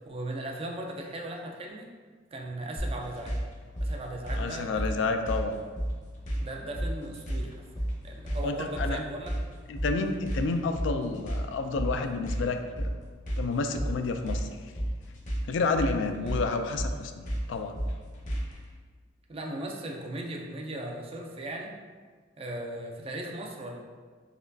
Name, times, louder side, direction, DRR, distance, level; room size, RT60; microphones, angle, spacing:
voice 1, 0.1-1.9 2.3-3.4 3.8-5.1 6.4-9.4 16.2-16.4 19.3-21.7 22.4-23.8, right 1 dB, 30° right, 1 dB, 0.4 m, -38 dB
sound 1, 2.8-18.7, equal, 40° left, 0.7 m, -32 dB
voice 2, 4.3-5.6 8.4-9.0 9.7-12.9 13.4-14.5 15.5-17.8, left 3 dB, 70° left, 6 dB, 0.3 m, -30 dB
4.2 x 3.0 x 2.6 m, 1.5 s
head